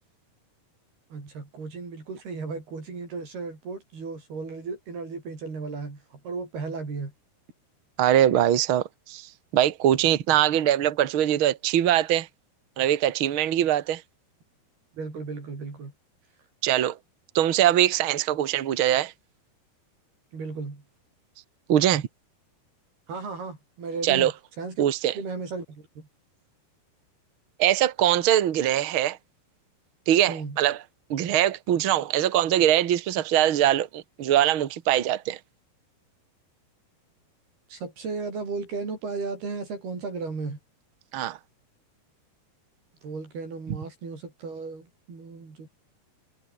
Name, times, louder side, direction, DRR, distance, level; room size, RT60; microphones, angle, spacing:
voice 1, 1.1-7.1 14.9-15.9 20.3-20.8 23.1-24.3 24.6-24.9 25.2-26.1 30.3-30.6 37.7-40.6 43.0-45.7, right 4 dB, 65° right, 9.0 m, -35 dB
voice 2, 8.0-12.3 12.8-14.0 16.6-17.0 17.3-19.1 21.7-22.1 24.0-24.3 24.8-25.1 27.6-29.2 30.1-30.8 31.1-35.4 41.1-41.4, right 11 dB, 90° right, 1.1 m, -22 dB
omnidirectional pair, 4.9 m